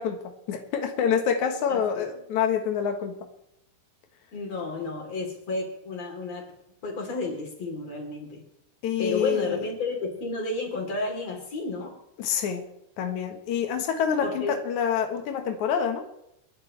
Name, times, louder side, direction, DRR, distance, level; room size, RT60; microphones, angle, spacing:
voice 1, 0.0-3.2 8.8-9.6 12.2-12.6 13.0-16.0, left 7 dB, 85° left, 5 dB, 1.6 m, -27 dB
voice 2, 1.7-2.1 4.3-6.4 6.8-8.4 9.0-11.9 14.2-14.6, left 3 dB, 35° left, 1 dB, 4.1 m, -31 dB
27.5 x 11.0 x 3.3 m, 0.80 s
omnidirectional pair, 5.6 m